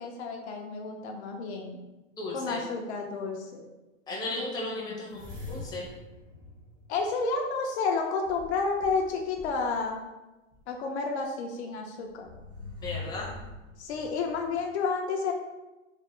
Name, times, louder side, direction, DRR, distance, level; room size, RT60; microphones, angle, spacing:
voice 1, 0.0-1.8 2.3-3.6 6.9-10.0 10.7-12.3 13.8-15.3, left 4 dB, 60° left, 2 dB, 0.5 m, -31 dB
voice 2, 2.2-2.6 4.1-5.9 12.8-13.3, left 2 dB, 10° left, -4 dB, 0.6 m, -35 dB
sound 1, 5.1-7.5 8.3-9.8 10.5-10.6 12.1-14.6, left 3 dB, 30° right, 0.9 m, -44 dB
3.1 x 2.0 x 2.9 m, 1.0 s
hypercardioid pair, 120°, 39 cm